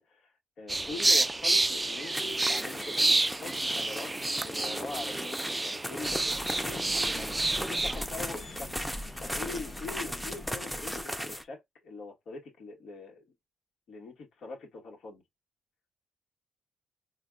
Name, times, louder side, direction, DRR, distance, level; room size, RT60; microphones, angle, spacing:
voice 1, 0.0-4.1 4.4-6.2 6.5-8.7 9.2-13.3 13.9-15.2, left 3 dB, 65° left, 2.2 m, -43 dB
sound 1, 0.7-8.0, right 2 dB, 15° right, 0.4 m, -29 dB
sound 2, 2.1-11.4, equal, 5° left, 0.9 m, -38 dB
sound 3, 6.0-11.0, left 1 dB, 30° left, 1.2 m, -43 dB
4.4 x 3.2 x 2.6 m
cardioid pair, 90°, 0 cm